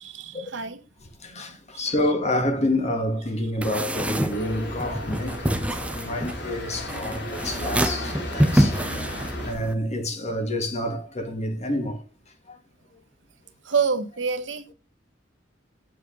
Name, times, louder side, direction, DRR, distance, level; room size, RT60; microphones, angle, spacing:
voice 1, 0.0-0.8 1.3-1.9 5.7-5.8 13.6-14.7, right 5 dB, 85° right, 1.4 m, -28 dB
voice 2, 1.2-5.6 5.9-12.0 12.5-12.6, left 1 dB, 35° left, 1.9 m, -28 dB
sound 1, 3.6-9.7, right 1 dB, 5° right, 0.8 m, -26 dB
sound 2, 4.3-9.5, left 1 dB, 65° left, 3.3 m, -34 dB
8.4 x 7.4 x 3.9 m
head